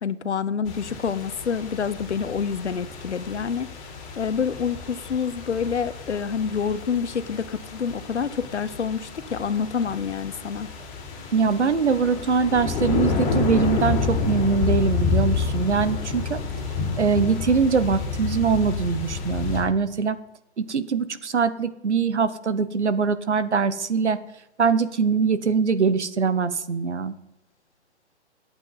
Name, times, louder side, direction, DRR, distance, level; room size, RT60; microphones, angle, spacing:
voice 1, 0.0-3.7 4.2-10.7, left 6 dB, 85° left, 14 dB, 1.1 m, -27 dB
sound 1, 0.7-19.6, left 4 dB, 20° left, 4.7 m, -29 dB
voice 2, 11.3-16.4 17.0-20.2 20.6-24.2 24.6-27.1, right 5 dB, 90° right, 13 dB, 1.3 m, -22 dB
22.0 x 8.8 x 4.0 m, 0.88 s
hypercardioid pair, 145°, 33 cm